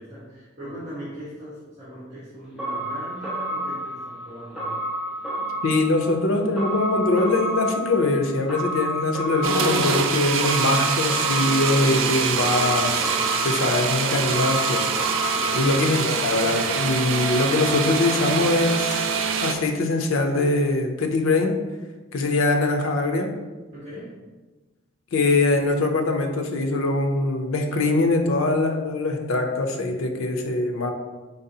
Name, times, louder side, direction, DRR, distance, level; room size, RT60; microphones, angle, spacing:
voice 1, 0.0-4.7 15.3-15.8 23.7-24.2, equal, 30° right, -11 dB, 1.2 m, -39 dB
sound 1, 2.6-15.9, right 1 dB, ahead, 1.1 m, -30 dB
voice 2, 5.6-13.2 13.4-14.9 15.5-19.1 19.4-21.5 22.1-23.3 25.1-30.9, left 2 dB, 85° left, 4 dB, 0.6 m, -22 dB
Smoothie Maker, 9.4-19.5, right 6 dB, 70° right, 0.4 m, -25 dB
3.9 x 3.9 x 2.8 m, 1.2 s
head